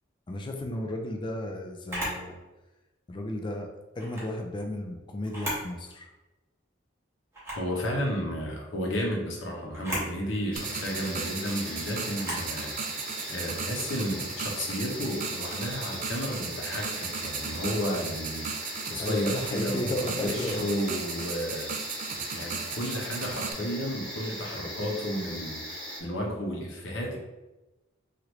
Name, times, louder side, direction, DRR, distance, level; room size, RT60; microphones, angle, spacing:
voice 1, 0.3-2.4 3.1-3.7 4.0-6.1 19.0-20.7, left 1 dB, 25° left, 3 dB, 0.4 m, -33 dB
Camera, 1.9-2.2 3.9-4.3 5.2-5.7 6.1-6.2 7.3-7.7 9.7-10.1 12.2-12.5, equal, 15° right, 1.0 m, -34 dB
voice 2, 7.6-12.7 13.0-18.5 18.9-21.8 22.3-27.2, equal, 75° left, -1 dB, 0.8 m, -32 dB
sound 1, 10.5-26.0, equal, 5° left, 1.2 m, -39 dB
sound 2, 10.6-23.5, right 5 dB, 45° right, 0.3 m, -37 dB
3.0 x 2.5 x 3.0 m, 1.1 s
head